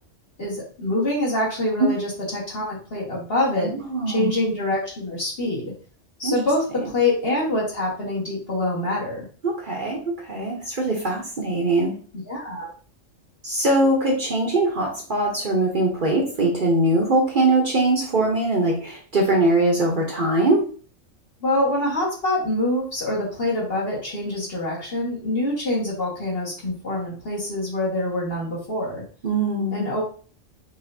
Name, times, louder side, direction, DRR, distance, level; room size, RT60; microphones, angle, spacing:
voice 1, 0.4-3.7 4.1-5.7 6.2-9.3 12.3-12.7 21.4-29.0 29.7-30.0, left 1 dB, 50° left, -4 dB, 1.8 m, -25 dB
voice 2, 3.6-4.3 6.2-6.3 6.8-6.9 9.4-11.9 13.4-20.6 29.2-29.8, right 2 dB, 45° right, 0 dB, 0.9 m, -22 dB
5.0 x 3.2 x 2.6 m, 0.41 s
omnidirectional pair, 1.3 m